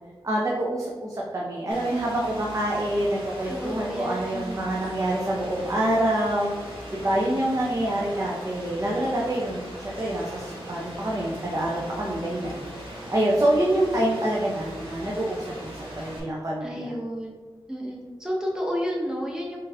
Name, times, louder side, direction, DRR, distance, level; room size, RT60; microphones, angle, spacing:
voice 1, 0.2-6.5 6.9-15.7 16.0-16.9, right 1 dB, 35° right, -4 dB, 0.7 m, -26 dB
Rain, 1.7-16.2, right 1 dB, 80° right, 1.1 m, -40 dB
voice 2, 3.5-4.7 16.6-17.3 17.7-19.6, equal, 5° right, -2 dB, 0.9 m, -31 dB
3.9 x 2.7 x 4.0 m, 1.3 s
wide cardioid pair, 75°, 9 cm